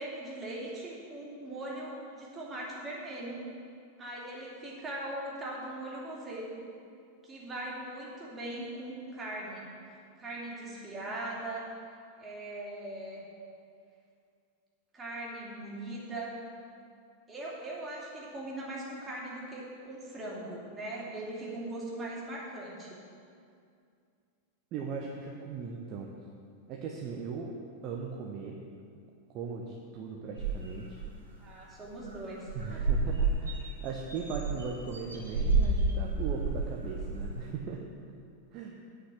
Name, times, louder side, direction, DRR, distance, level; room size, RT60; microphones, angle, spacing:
voice 1, 0.0-3.4 4.0-6.6 7.2-9.7 10.2-11.6 12.2-13.3 14.9-16.4 17.3-23.0 31.4-33.0, right 1 dB, 20° right, -5 dB, 2.8 m, -40 dB
voice 2, 24.7-26.1 26.7-27.5 27.8-28.6 29.3-31.0 32.5-37.9 38.5-38.8, right 5 dB, 35° right, -1 dB, 0.9 m, -38 dB
sound 1, 30.4-31.1 31.6-31.7 31.9-32.2 32.4-37.4, right 3 dB, 75° right, 2.6 m, -30 dB
8.7 x 5.8 x 7.9 m, 2.4 s
figure-of-eight pair, 90°, 0 cm